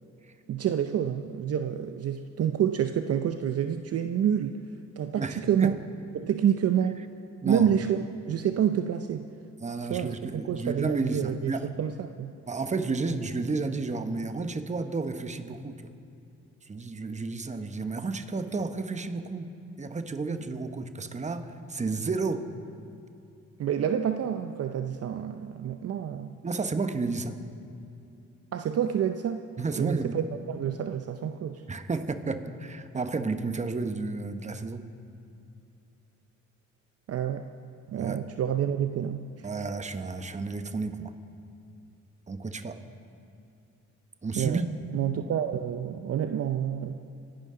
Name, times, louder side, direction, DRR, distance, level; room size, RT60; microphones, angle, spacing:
voice 1, 0.5-4.6 5.0-5.8 6.1-7.0 7.4-9.3 9.9-12.3 20.2-20.4 23.6-26.3 28.5-29.4 29.8-31.6 37.1-37.5 37.9-39.5 44.4-44.6 44.9-47.0, right 9 dB, 55° right, 8 dB, 0.6 m, -28 dB
voice 2, 5.2-5.8 7.4-7.7 9.6-11.7 12.5-15.8 16.6-19.5 19.8-22.5 26.4-27.4 29.6-30.1 31.7-34.9 37.9-38.2 39.4-41.1 42.3-42.8 44.2-44.7, right 3 dB, 25° right, 9 dB, 1.0 m, -31 dB
25.5 x 11.5 x 3.8 m, 2.6 s
cardioid pair, 90°, 30 cm